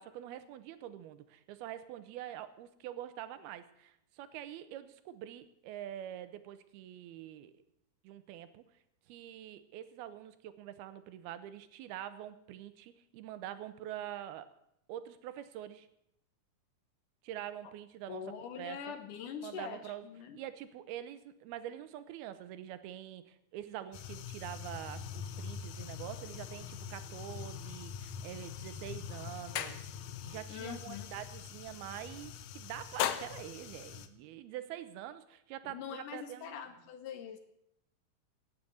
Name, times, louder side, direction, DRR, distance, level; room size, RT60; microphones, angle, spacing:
voice 1, 0.0-7.6 8.0-8.6 9.1-14.5 14.9-15.9 17.2-18.2 18.6-18.9 19.4-20.1 20.3-29.8 30.2-36.7, right 11 dB, 85° right, 12 dB, 2.8 m, -45 dB
voice 2, 18.1-20.4 30.5-31.1 35.6-37.4, left 8 dB, 70° left, 9 dB, 2.2 m, -43 dB
sound 1, 23.9-34.1, left 9 dB, 90° left, 1.5 m, -41 dB
17.0 x 9.2 x 7.9 m, 0.76 s
omnidirectional pair, 4.4 m